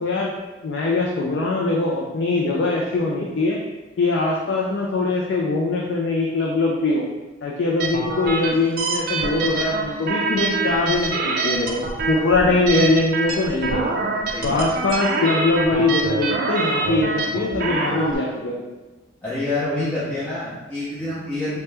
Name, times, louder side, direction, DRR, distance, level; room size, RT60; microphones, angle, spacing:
voice 1, 0.0-0.4 0.6-3.6 4.0-7.1 7.4-14.0 14.4-18.6, left 3 dB, 75° left, -2 dB, 0.4 m, -22 dB
sound 1, 7.8-18.1, right 3 dB, 50° right, 0.3 m, -25 dB
voice 2, 14.3-14.7 19.2-21.6, left 2 dB, 10° left, -12 dB, 0.6 m, -27 dB
2.9 x 2.2 x 3.3 m, 1.1 s
head